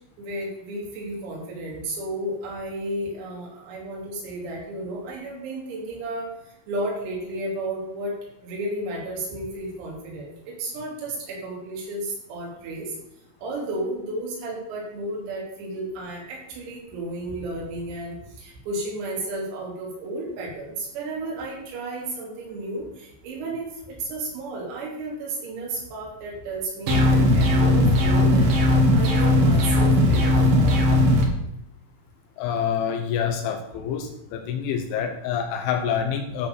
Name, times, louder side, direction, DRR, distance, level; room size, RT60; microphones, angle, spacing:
voice 1, 0.2-6.3 6.7-8.1 8.4-12.9 13.4-28.6 28.9-30.8, right 2 dB, 90° right, -2 dB, 5.6 m, -33 dB
sound 1, 26.9-31.3, left 1 dB, 60° right, 2.8 m, -18 dB
voice 2, 32.4-36.5, left 7 dB, 75° left, 4 dB, 3.0 m, -27 dB
13.5 x 4.6 x 6.8 m, 0.81 s
omnidirectional pair, 6.0 m